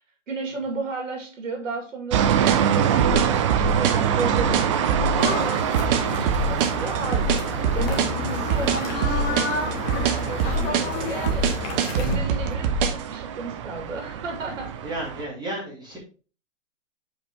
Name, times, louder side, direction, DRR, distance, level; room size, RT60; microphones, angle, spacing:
voice 1, 0.3-7.3 7.7-9.7 10.0-11.5 12.0-14.7, right 3 dB, 80° right, 2 dB, 2.5 m, -33 dB
sound 1, 2.1-15.2, right 9 dB, 25° right, 0.4 m, -26 dB
sound 2, 2.1-13.0, right 5 dB, 45° right, 1.1 m, -24 dB
sound 3, 5.2-12.2, left 3 dB, 30° left, 1.9 m, -30 dB
voice 2, 14.8-16.0, right 1 dB, 10° right, -4 dB, 2.3 m, -33 dB
5.3 x 5.3 x 4.5 m, 0.36 s
hypercardioid pair, 140°, 38 cm